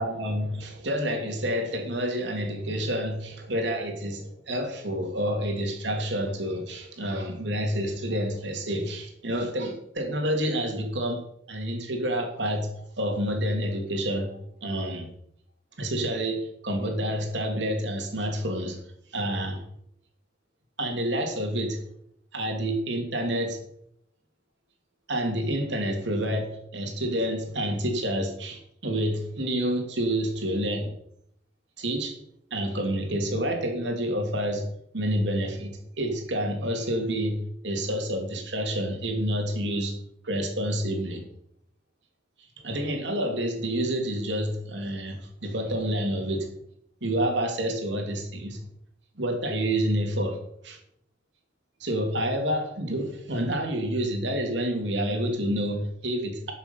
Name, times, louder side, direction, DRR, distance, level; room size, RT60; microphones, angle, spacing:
voice 1, 0.0-11.2 11.5-15.1 15.8-18.8 19.1-19.6 20.8-21.8 22.3-23.6 25.1-30.9 31.8-32.2 32.5-34.6 34.9-39.9 40.2-41.2 42.6-46.5 47.0-48.6 49.2-50.4 50.6-50.8 51.8-56.5, equal, 65° right, 3 dB, 2.9 m, -28 dB
12.5 x 7.2 x 5.8 m, 0.71 s
head